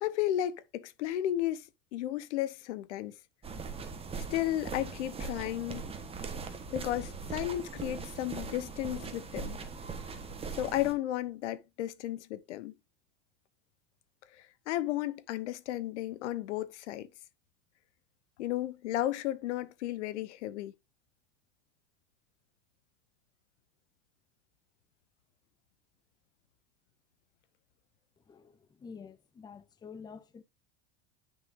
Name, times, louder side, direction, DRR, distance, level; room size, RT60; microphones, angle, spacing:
voice 1, 0.0-1.7 1.9-3.1 4.3-5.8 6.7-9.6 10.5-12.7 14.7-17.1 18.4-20.7, left 13 dB, 80° left, 1.0 m, -33 dB
sound 1, 3.4-10.9, right 4 dB, 15° right, 1.2 m, -40 dB
voice 2, 28.3-30.4, left 5 dB, 10° left, 0.6 m, -49 dB
9.7 x 5.8 x 2.6 m
supercardioid pair, 130°, 34 cm